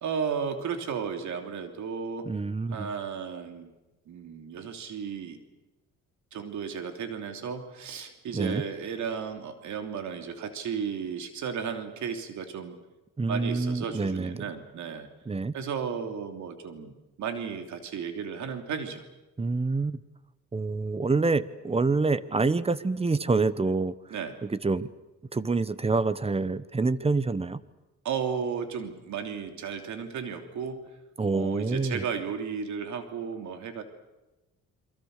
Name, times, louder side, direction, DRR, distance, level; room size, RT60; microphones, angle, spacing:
voice 1, 0.0-2.3 2.7-3.7 4.1-5.4 6.3-12.8 13.3-15.1 15.5-19.0 24.1-24.4 28.0-30.8 31.3-33.8, right 6 dB, 75° right, 6 dB, 3.0 m, -34 dB
voice 2, 2.2-2.9 8.3-8.6 13.2-14.3 15.3-15.5 19.4-20.0 20.5-23.9 24.4-24.9 25.3-27.6 31.2-32.0, right 3 dB, 20° right, 16 dB, 1.1 m, -27 dB
28.5 x 23.0 x 6.6 m, 1.0 s
cardioid pair, 90°, 30 cm